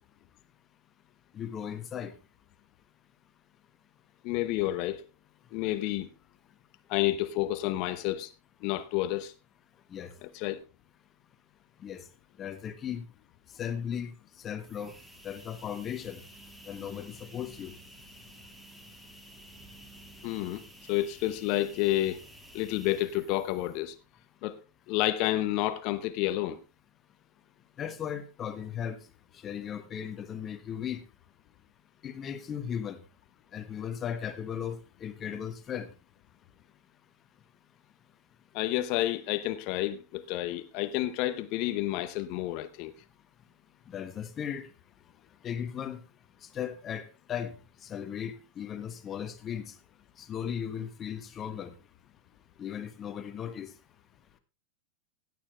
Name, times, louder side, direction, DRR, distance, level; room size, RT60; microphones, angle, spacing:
voice 1, 1.3-2.1 9.9-10.1 11.8-12.0 12.4-13.0 13.6-14.1 14.4-14.9 15.2-16.2 16.6-17.7 27.8-29.0 29.4-31.0 32.0-33.0 33.5-35.9 43.9-44.7 45.4-46.0 46.5-47.5 47.8-49.7 50.2-51.7 52.6-53.7, left 8 dB, 25° left, 1.4 m, -36 dB
voice 2, 4.2-5.0 5.5-6.1 6.9-8.3 8.6-9.3 10.2-10.6 20.2-20.6 20.9-22.2 22.5-23.9 24.4-24.6 24.9-26.6 38.5-42.9, left 15 dB, 45° left, 0.9 m, -30 dB
sound 1, 14.6-24.0, right 1 dB, 5° right, 2.1 m, -52 dB
16.0 x 9.0 x 3.2 m
figure-of-eight pair, 90°, 0 cm